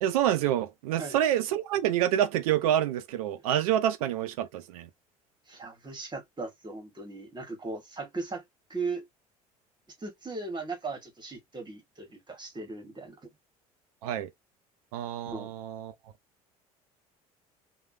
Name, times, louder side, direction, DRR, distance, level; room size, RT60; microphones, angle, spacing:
voice 1, 0.0-4.9 14.0-14.3 14.9-15.9, right 11 dB, 70° right, 0.5 m, -27 dB
voice 2, 5.5-8.4 8.7-9.1 10.0-13.3 15.3-15.5, right 3 dB, 25° right, 1.4 m, -38 dB
3.1 x 2.3 x 2.6 m
figure-of-eight pair, 60°, 19 cm